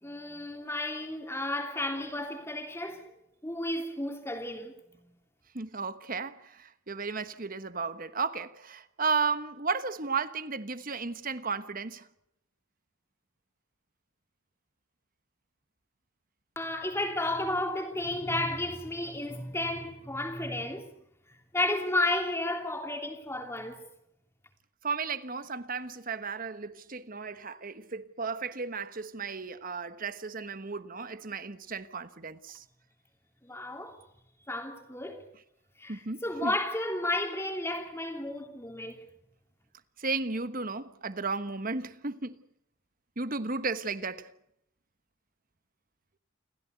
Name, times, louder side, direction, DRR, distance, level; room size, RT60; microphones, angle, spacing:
voice 1, 0.0-3.1 3.4-5.1 16.5-20.9 21.5-23.9 33.4-34.0 34.5-35.3 35.8-39.1, left 1 dB, 10° left, 3.1 m, -33 dB
voice 2, 5.5-12.1 24.8-32.6 35.9-36.5 40.0-42.4 43.2-44.3, right 4 dB, 40° right, 1.2 m, -34 dB
29.0 x 15.0 x 8.2 m
head